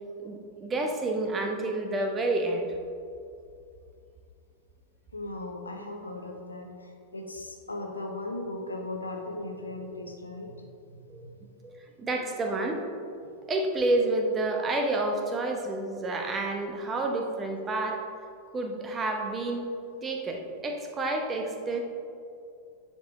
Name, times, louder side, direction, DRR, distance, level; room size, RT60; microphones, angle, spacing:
voice 1, 0.2-2.7 11.1-11.2 11.6-12.8 13.5-18.2 18.5-19.6 20.0-21.8, right 2 dB, 20° right, 3 dB, 0.9 m, -29 dB
voice 2, 5.1-11.3, left 2 dB, 80° left, 3 dB, 0.9 m, -38 dB
10.0 x 5.4 x 3.6 m, 2.5 s
figure-of-eight pair, 90°, 0 cm